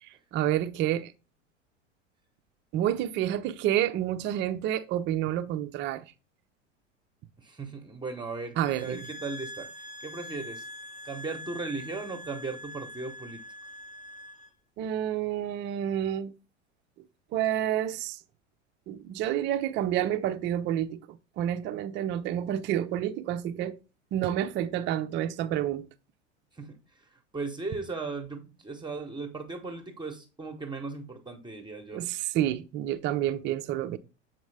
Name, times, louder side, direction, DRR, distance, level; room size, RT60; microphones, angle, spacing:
voice 1, 0.3-1.1 2.7-6.0 8.6-9.1 14.8-16.3 17.3-18.2 18.9-21.0 21.4-23.8 24.1-25.9 31.9-34.0, right 11 dB, 30° right, 0.5 m, -29 dB
voice 2, 7.4-9.7 10.0-10.6 11.0-13.4 26.6-26.8 27.3-32.0, right 3 dB, 10° right, 1.0 m, -37 dB
sound 1, 8.7-14.5, left 1 dB, 20° left, 0.9 m, -43 dB
7.1 x 4.3 x 3.3 m
figure-of-eight pair, 85°, 37 cm